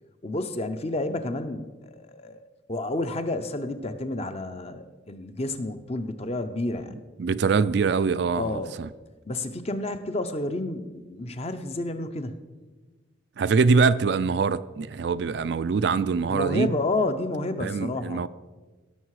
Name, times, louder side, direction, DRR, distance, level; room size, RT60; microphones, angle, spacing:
voice 1, 0.2-2.4 2.7-7.0 8.3-8.8 9.3-12.4 16.2-18.2, left 2 dB, 30° left, 9 dB, 0.7 m, -30 dB
voice 2, 7.2-8.9 13.4-16.7 17.6-18.3, right 5 dB, 60° right, 14 dB, 0.3 m, -23 dB
17.0 x 6.6 x 4.8 m, 1.3 s
head